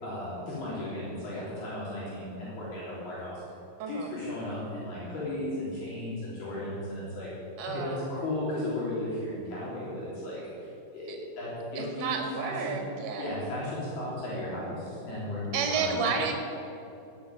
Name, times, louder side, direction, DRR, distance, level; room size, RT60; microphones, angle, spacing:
voice 1, 0.0-3.4 3.9-7.3 7.7-12.1 12.4-12.9 13.2-16.2, left 1 dB, 60° left, -8 dB, 5.3 m, -35 dB
voice 2, 7.6-8.1 11.8-13.3 15.5-16.3, right 5 dB, 55° right, 2 dB, 3.0 m, -31 dB
17.0 x 7.8 x 9.1 m, 2.8 s
omnidirectional pair, 5.1 m